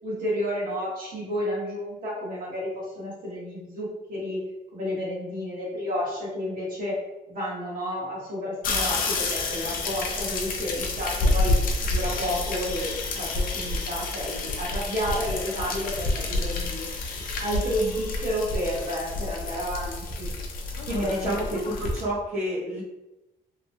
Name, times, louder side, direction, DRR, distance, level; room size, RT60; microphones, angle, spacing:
voice 1, 0.0-4.4 4.7-6.9 7.3-11.6 11.8-16.9 17.4-20.3 20.9-21.4, equal, 65° right, -6 dB, 1.3 m, -31 dB
sound 1, 8.6-22.0, left 2 dB, 70° left, 0.5 m, -29 dB
voice 2, 20.9-22.8, right 1 dB, 45° right, -9 dB, 0.7 m, -29 dB
3.0 x 2.2 x 2.7 m, 0.99 s
cardioid pair, 150°, 15 cm